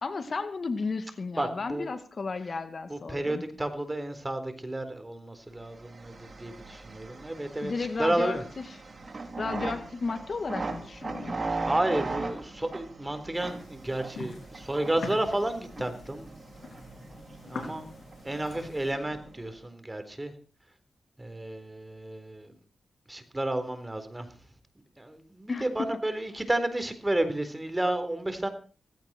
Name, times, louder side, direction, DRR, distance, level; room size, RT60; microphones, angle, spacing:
voice 1, 0.0-3.4 7.6-8.7 9.4-11.4 25.5-25.9, left 4 dB, 55° left, 9 dB, 1.9 m, -33 dB
voice 2, 1.3-1.9 2.9-7.7 8.0-8.4 11.6-16.3 17.4-17.9 18.2-20.3 21.2-22.5 23.1-24.3 25.0-28.5, right 1 dB, 20° right, 9 dB, 4.0 m, -31 dB
sound 1, 5.7-19.5, right 3 dB, 45° right, 4.1 m, -39 dB
sound 2, 13.3-18.9, left 4 dB, 80° left, 4.4 m, -44 dB
17.0 x 16.5 x 4.5 m, 0.38 s
cardioid pair, 60°, 0 cm